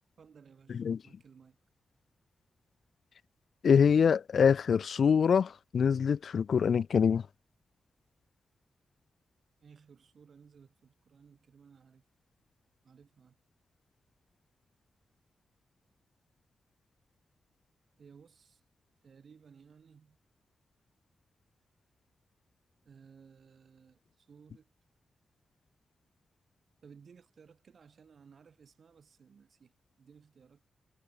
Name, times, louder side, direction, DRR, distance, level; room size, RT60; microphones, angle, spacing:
voice 1, 0.2-1.6 9.6-12.0 12.8-13.4 18.0-18.6 19.0-20.2 22.8-24.7 26.8-29.7 30.0-30.7, right 6 dB, 60° right, 5.4 m, -58 dB
voice 2, 3.6-7.2, left 7 dB, 65° left, 0.6 m, -25 dB
wide cardioid pair, 110°, 0 cm